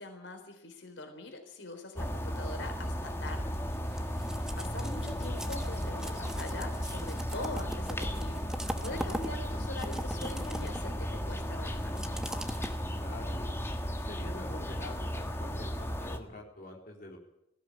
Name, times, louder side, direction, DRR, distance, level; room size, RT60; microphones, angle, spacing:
voice 1, 0.0-3.6 4.2-12.2, left 2 dB, 80° left, 5 dB, 4.0 m, -43 dB
sound 1, 2.0-16.2, equal, 15° left, 1.5 m, -35 dB
sound 2, 3.5-13.3, equal, 5° right, 1.1 m, -41 dB
voice 2, 3.9-4.6 13.0-13.5 14.1-17.2, left 2 dB, 50° left, -2 dB, 4.0 m, -46 dB
19.0 x 16.0 x 8.7 m, 0.84 s
head